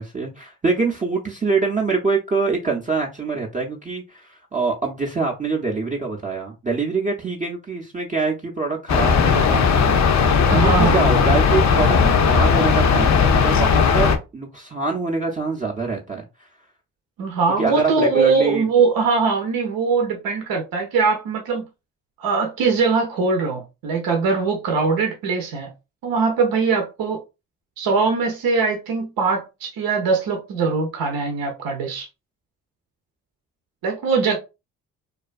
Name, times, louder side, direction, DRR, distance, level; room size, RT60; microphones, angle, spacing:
voice 1, 0.0-16.2 17.6-18.6, right 4 dB, 20° right, 0.5 m, -25 dB
sound 1, 8.9-14.2, left 5 dB, 50° left, 0.5 m, -17 dB
voice 2, 10.5-11.3 17.2-21.7 22.2-25.7 26.0-27.2 27.8-32.1 33.8-34.4, right 4 dB, 70° right, 0.6 m, -21 dB
2.4 x 2.2 x 2.4 m
supercardioid pair, 45°, 37 cm